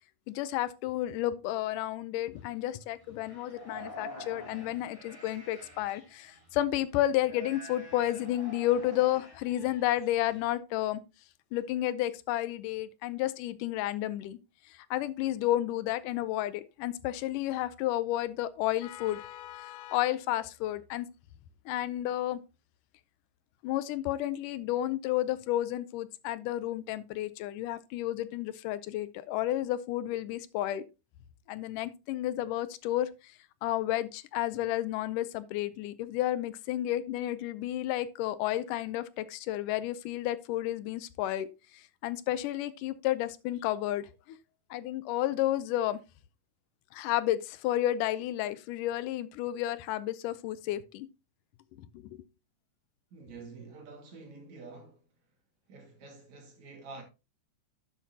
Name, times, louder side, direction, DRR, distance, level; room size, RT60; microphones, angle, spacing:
voice 1, 0.3-11.0 11.5-14.4 14.7-21.1 21.7-22.4 23.6-30.8 31.5-33.3 33.6-41.5 41.7-44.4 44.7-46.0 46.9-51.1 51.9-52.2, left 13 dB, 80° left, 2.2 m, -31 dB
sound 1, 2.3-2.5 3.0-6.5 7.1-10.5, left 1 dB, 5° left, 2.3 m, -48 dB
voice 2, 53.1-55.0 55.7-57.0, right 4 dB, 60° right, 3.2 m, -48 dB
11.0 x 7.3 x 2.8 m
omnidirectional pair, 3.7 m